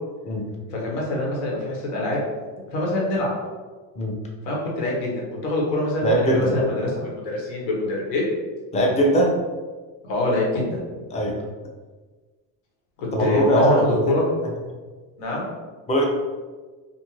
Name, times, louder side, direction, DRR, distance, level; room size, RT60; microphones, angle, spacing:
voice 1, 0.7-2.2 2.7-3.3 4.4-8.2 10.0-11.0 13.0-14.2 15.2-15.5, left 1 dB, 85° left, -3 dB, 1.1 m, -25 dB
voice 2, 6.0-6.7 8.7-9.4 11.1-11.4 13.1-14.0 15.9-16.0, equal, 15° left, -1 dB, 0.4 m, -20 dB
2.6 x 2.5 x 3.0 m, 1.4 s
supercardioid pair, 110°, 48 cm